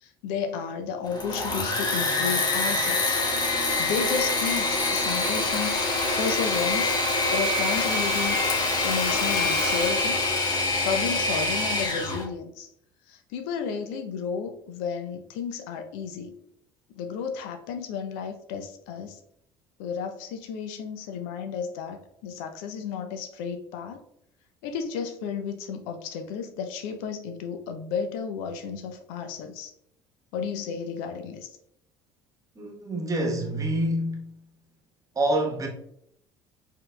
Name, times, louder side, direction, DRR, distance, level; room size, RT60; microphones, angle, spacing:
voice 1, 0.0-3.2 3.8-5.8 6.2-7.0 7.3-8.4 8.8-10.2 10.8-12.7 13.1-16.3 16.9-19.2 19.8-24.0 24.6-29.7 30.3-31.5, left 6 dB, 70° left, 0.5 m, -32 dB
Engine / Mechanisms, 1.0-12.2, left 2 dB, 35° left, 1.1 m, -25 dB
voice 2, 32.5-34.3 35.1-35.7, right 1 dB, 25° right, 1.2 m, -27 dB
4.4 x 3.6 x 2.3 m
hypercardioid pair, 60°, 12 cm